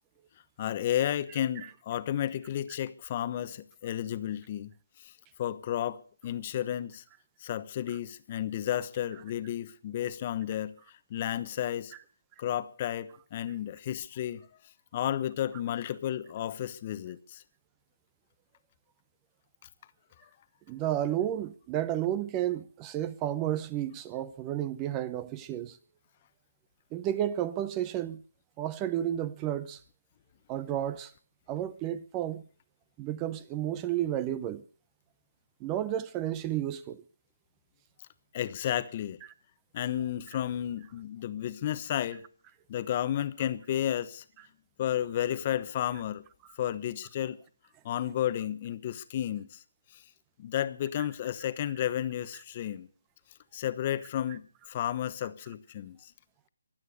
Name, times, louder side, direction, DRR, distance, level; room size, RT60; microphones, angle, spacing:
voice 1, 0.6-4.7 5.0-5.1 5.4-7.0 7.4-11.9 12.4-14.5 14.9-17.4 20.2-20.3 38.3-39.2 39.7-42.2 42.7-44.2 44.8-46.2 46.6-47.4 47.8-49.6 49.9-50.0 50.4-52.9 53.5-56.1, left 11 dB, 35° left, 1.0 m, -32 dB
voice 2, 20.7-25.8 26.9-28.2 28.6-29.8 30.5-31.1 31.5-32.4 33.0-34.6 35.6-37.0, right 12 dB, 20° right, 0.7 m, -32 dB
24.0 x 9.1 x 6.6 m
hypercardioid pair, 160°, 0 cm